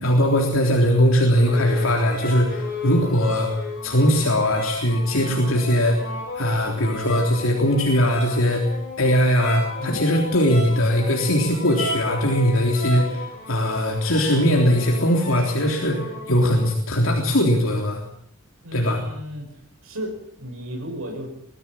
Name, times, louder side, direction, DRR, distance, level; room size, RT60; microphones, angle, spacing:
voice 1, 0.0-3.5 3.8-6.0 6.4-8.6 9.0-18.0 18.7-19.0, equal, 70° left, 0 dB, 3.6 m, -20 dB
sound 1, 1.3-16.7, left 2 dB, 45° left, 7.5 m, -34 dB
voice 2, 18.6-19.5 19.8-21.3, equal, 80° right, 2 dB, 5.8 m, -34 dB
22.0 x 15.5 x 8.8 m, 0.68 s
head